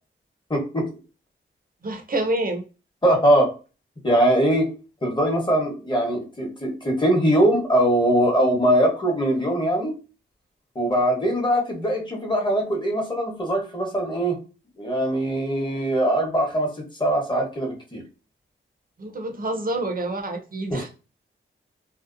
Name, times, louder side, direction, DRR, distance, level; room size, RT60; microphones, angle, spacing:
voice 1, 0.5-0.9 3.0-3.5 4.0-4.7 5.0-10.0 10.7-14.4 14.8-18.0 20.7-20.8, right 1 dB, 20° left, 0 dB, 1.0 m, -21 dB
voice 2, 1.8-2.6 19.0-20.9, right 2 dB, 40° right, 4 dB, 0.6 m, -27 dB
2.7 x 2.0 x 2.4 m, 0.33 s
cardioid pair, 55°, 21 cm